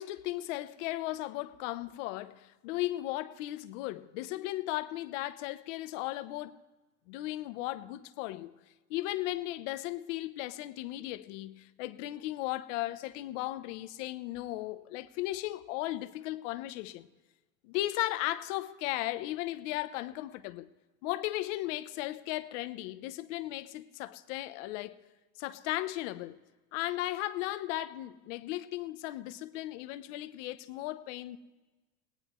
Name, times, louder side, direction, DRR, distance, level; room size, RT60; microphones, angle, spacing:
voice 1, 0.0-6.6 7.1-8.5 8.9-17.1 17.6-20.7 21.0-25.0 25.4-26.4 26.7-31.4, left 16 dB, 85° left, 0.9 m, -36 dB
20.0 x 18.0 x 3.1 m
cardioid pair, 165°, 36 cm